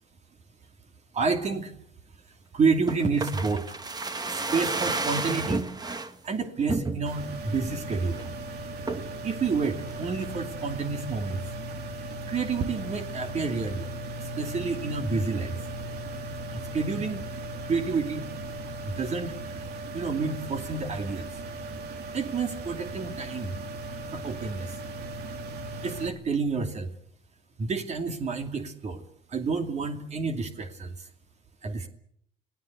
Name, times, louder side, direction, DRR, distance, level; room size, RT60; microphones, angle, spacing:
voice 1, 1.1-1.7 2.5-3.8 4.2-5.7 6.2-8.2 9.2-11.4 12.3-13.9 14.2-15.6 16.5-17.2 17.6-18.3 18.8-19.6 19.9-21.3 22.1-23.6 24.1-24.8 25.8-26.9 27.6-29.0 29.3-31.1 31.6-31.9, right 4 dB, 40° right, 6 dB, 2.6 m, -29 dB
sound 1, 2.9-6.1 6.7-7.3 7.7-7.8 8.1-8.4 8.9-9.2 9.6-10.3 10.6-10.7, right 3 dB, 25° right, 1.9 m, -31 dB
sound 2, 7.1-26.1, right 2 dB, 70° right, 2.9 m, -37 dB
27.0 x 17.5 x 8.1 m, 0.68 s
cardioid pair, 110°, 17 cm